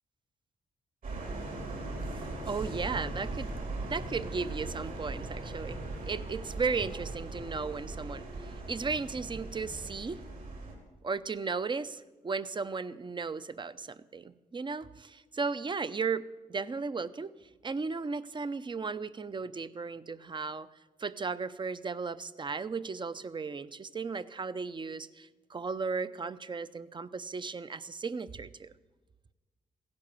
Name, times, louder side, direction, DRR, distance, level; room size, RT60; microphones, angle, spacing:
sound 1, 1.0-10.7, right 2 dB, 70° right, 5.3 m, -39 dB
voice 1, 2.1-3.6 3.8-10.2 11.0-17.3 17.6-20.7 21.0-28.7, right 4 dB, 30° right, 15 dB, 0.6 m, -35 dB
16.0 x 10.5 x 6.9 m, 1.2 s
cardioid pair, 90°, 15 cm